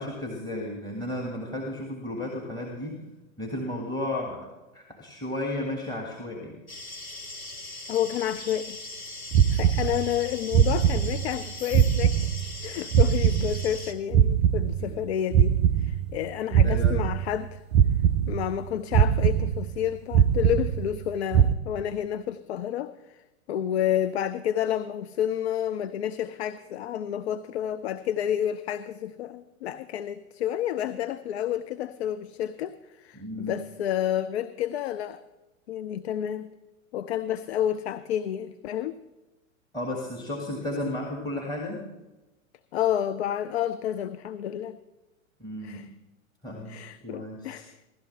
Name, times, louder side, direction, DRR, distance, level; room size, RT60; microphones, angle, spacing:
voice 1, 0.0-3.0 3.4-4.5 4.7-6.6 14.8-15.0 16.6-17.0 33.1-33.6 39.7-41.9 45.4-45.9 46.4-47.6, left 1 dB, 10° left, 1 dB, 1.6 m, -33 dB
sound 1, 6.7-13.9, left 2 dB, 85° left, 1.4 m, -40 dB
voice 2, 7.9-8.8 9.5-12.2 12.6-17.6 18.3-35.2 35.7-36.5 36.9-39.0 42.7-44.8 45.6-45.9 46.7-47.8, left 10 dB, 50° left, 12 dB, 0.6 m, -30 dB
sound 2, 9.3-10.3 10.5-11.5 11.7-13.9 14.1-16.3 16.5-17.5 17.7-18.7 18.9-19.9 20.1-21.1 21.3-21.5, right 9 dB, 35° right, 0.5 m, -22 dB
16.5 x 12.0 x 3.2 m, 1.1 s
figure-of-eight pair, 100°, 41 cm